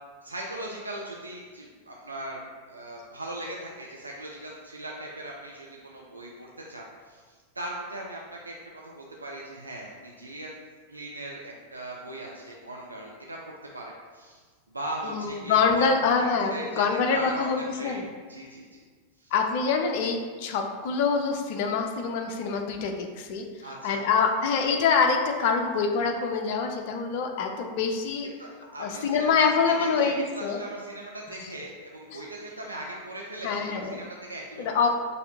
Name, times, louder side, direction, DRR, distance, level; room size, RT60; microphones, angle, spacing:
voice 1, 0.2-10.6 10.9-15.9 16.2-18.0 18.3-18.8 19.2-19.3 23.6-24.3 28.4-29.4 29.6-34.9, right 1 dB, 80° right, -2 dB, 0.4 m, -39 dB
voice 2, 15.0-18.0 19.3-23.5 23.8-28.3 28.8-30.6 32.1-32.2 33.4-34.0 34.6-34.9, left 5 dB, 50° left, 4 dB, 0.5 m, -25 dB
6.5 x 2.7 x 2.7 m, 1.5 s
figure-of-eight pair, 90°, 0 cm